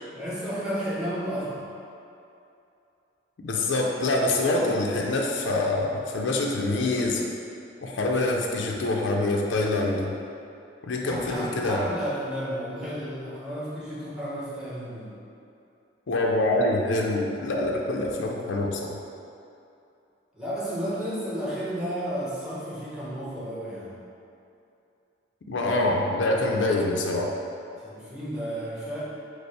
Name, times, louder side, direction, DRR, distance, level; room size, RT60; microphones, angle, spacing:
voice 1, 0.1-1.7 11.0-15.2 20.3-24.0 27.8-29.0, equal, 5° right, -8 dB, 0.8 m, -32 dB
voice 2, 3.4-7.3 7.8-10.2 10.8-11.8 16.1-19.0 25.5-27.3, left 2 dB, 80° left, 0 dB, 0.5 m, -25 dB
5.1 x 2.0 x 4.7 m, 2.7 s
head